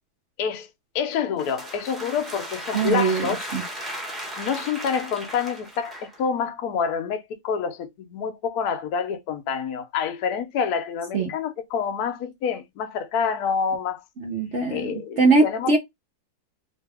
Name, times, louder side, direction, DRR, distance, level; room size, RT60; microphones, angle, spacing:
voice 1, 0.9-3.5 4.4-14.0 14.7-15.7, left 6 dB, 65° left, 1.0 m, -27 dB
sound 1, 1.1-6.2, right 1 dB, ahead, 0.5 m, -36 dB
voice 2, 2.7-3.6 11.1-11.3 14.2-15.8, right 3 dB, 75° right, 0.6 m, -22 dB
2.9 x 2.8 x 3.4 m
omnidirectional pair, 2.2 m